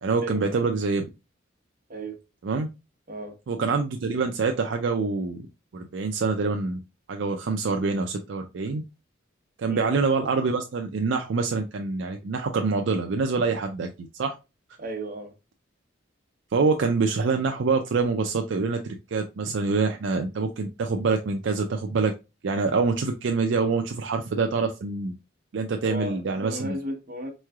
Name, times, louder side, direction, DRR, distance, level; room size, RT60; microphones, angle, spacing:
voice 1, 0.0-1.0 2.4-2.7 3.5-5.4 5.7-6.8 7.1-8.8 9.6-13.9 14.1-14.4 16.5-22.1 22.4-25.1 25.5-26.7, right 4 dB, 70° right, 0.4 m, -25 dB
voice 2, 1.9-2.2 3.1-3.4 9.7-9.9 14.8-15.3 25.8-27.3, right 1 dB, 45° right, 0.9 m, -35 dB
4.5 x 3.1 x 2.3 m
head